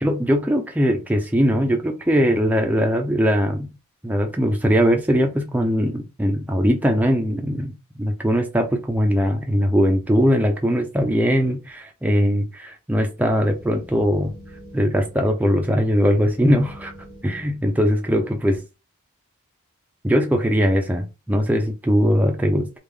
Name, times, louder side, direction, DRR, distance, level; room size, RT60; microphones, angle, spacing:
voice 1, 0.0-3.7 4.0-14.4 14.7-16.9 17.2-18.6 20.0-22.8, equal, 5° right, 0.5 m, -20 dB
sound 1, 13.2-18.3, equal, 75° left, 1.5 m, -46 dB
3.6 x 2.4 x 3.2 m
head